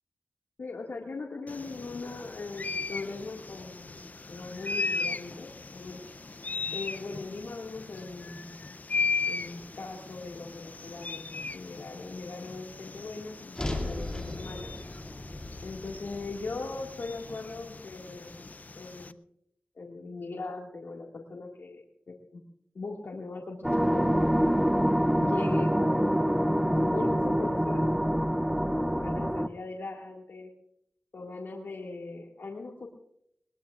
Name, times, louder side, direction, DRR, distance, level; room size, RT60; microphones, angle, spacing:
voice 1, 0.6-6.0 6.7-8.6 9.3-14.7 15.6-19.2 19.8-21.8 22.1-22.4 22.7-24.3 25.2-28.3 28.7-30.5 31.1-32.9, left 3 dB, 75° left, -1 dB, 2.0 m, -40 dB
sound 1, 1.5-19.1, left 4 dB, 45° left, 0.5 m, -37 dB
sound 2, 13.5-17.8, left 1 dB, 20° left, 2.5 m, -38 dB
sound 3, 23.6-29.5, equal, 5° right, 0.7 m, -25 dB
21.0 x 20.5 x 2.5 m, 0.76 s
wide cardioid pair, 70°, 4 cm